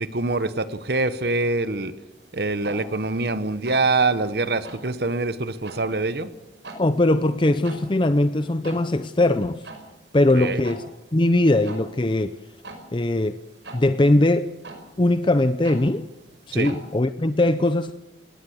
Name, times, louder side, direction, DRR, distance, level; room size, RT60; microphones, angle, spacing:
voice 1, 0.0-1.9 2.3-6.3 10.4-10.6 16.5-16.7, right 3 dB, 60° right, 13 dB, 1.2 m, -24 dB
sound 1, 2.1-17.0, right 2 dB, 85° right, 5.5 m, -45 dB
voice 2, 6.8-9.7 10.1-10.8 11.1-12.4 12.9-13.3 13.7-14.5 15.0-16.1 16.5-17.9, left 1 dB, 25° left, 11 dB, 0.6 m, -20 dB
19.5 x 18.5 x 8.0 m, 1.0 s
head